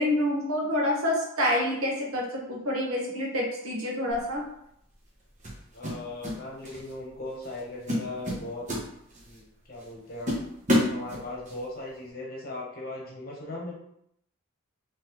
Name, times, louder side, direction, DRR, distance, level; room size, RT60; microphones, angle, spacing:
voice 1, 0.0-4.4, left 1 dB, 75° right, -2 dB, 1.2 m, -27 dB
sound 1, 4.1-4.3 5.4-6.4 6.6-6.9 7.4-7.6 7.9-9.4 9.8-9.9 10.3-11.6, left 1 dB, 35° right, 1.0 m, -28 dB
voice 2, 5.7-8.6 9.2-10.3 10.9-13.7, left 2 dB, 45° left, -3 dB, 1.1 m, -38 dB
4.0 x 3.1 x 3.1 m, 0.74 s
head